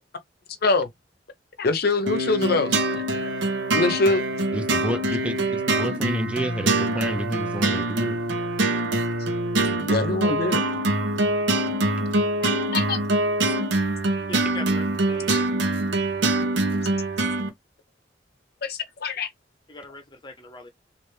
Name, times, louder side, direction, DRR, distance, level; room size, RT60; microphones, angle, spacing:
voice 1, 1.6-3.0 3.7-4.2 9.9-10.6 12.4-13.0 15.3-15.4 18.6-19.3, left 2 dB, 60° left, 0.6 m, -24 dB
sound 1, 2.1-17.5, right 2 dB, 80° right, 0.8 m, -24 dB
voice 2, 4.5-8.2, equal, 5° right, 0.4 m, -30 dB
voice 3, 14.3-15.5 19.7-20.7, left 2 dB, 25° left, 0.8 m, -41 dB
3.3 x 2.5 x 3.1 m
head